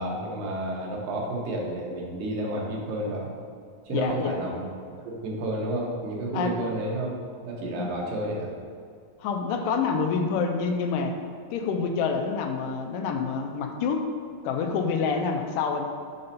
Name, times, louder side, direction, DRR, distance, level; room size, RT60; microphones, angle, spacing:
voice 1, 0.0-3.3 3.9-4.7 5.1-7.1 7.4-8.5, right 1 dB, 90° right, -2 dB, 2.8 m, -30 dB
voice 2, 3.9-4.4 6.3-6.5 7.8-7.9 9.2-11.1 11.5-14.1 14.4-15.9, left 5 dB, 85° left, 4 dB, 2.2 m, -27 dB
6.6 x 5.2 x 4.1 m, 2.2 s
omnidirectional pair, 3.8 m